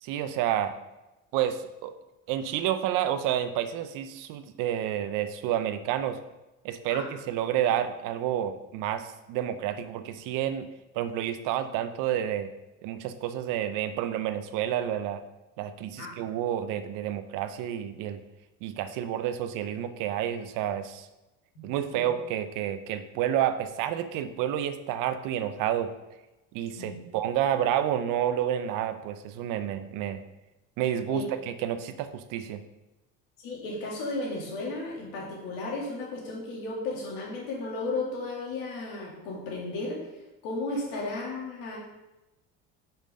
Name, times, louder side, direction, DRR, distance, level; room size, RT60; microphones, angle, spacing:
voice 1, 0.0-0.7 1.3-1.9 2.3-6.2 6.6-10.7 10.9-12.5 12.8-15.2 15.6-18.2 18.6-21.1 21.6-25.9 26.5-30.2 30.8-32.6, right 10 dB, 70° right, 10 dB, 0.8 m, -29 dB
voice 2, 21.5-22.0 26.7-27.0 31.1-31.3 33.4-40.1 40.4-41.8, left 2 dB, 80° left, -3 dB, 2.7 m, -34 dB
5.9 x 5.6 x 5.1 m, 1.0 s
supercardioid pair, 95°, 33 cm